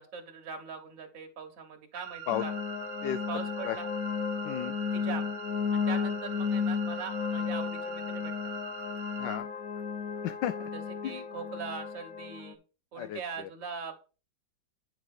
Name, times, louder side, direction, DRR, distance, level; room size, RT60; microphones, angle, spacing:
voice 1, 0.0-2.5 3.3-3.9 4.9-5.3 5.7-8.3 10.7-12.6 12.9-13.9, right 5 dB, 50° right, 3 dB, 1.6 m, -41 dB
sound 1, 1.9-9.4, right 10 dB, 70° right, 1.5 m, -44 dB
sound 2, 2.3-12.5, left 6 dB, 60° left, 1.2 m, -33 dB
voice 2, 10.2-10.7 11.0-11.2 13.0-13.5, left 11 dB, 80° left, 11 dB, 1.2 m, -33 dB
9.4 x 5.1 x 3.7 m, 0.34 s
omnidirectional pair, 2.0 m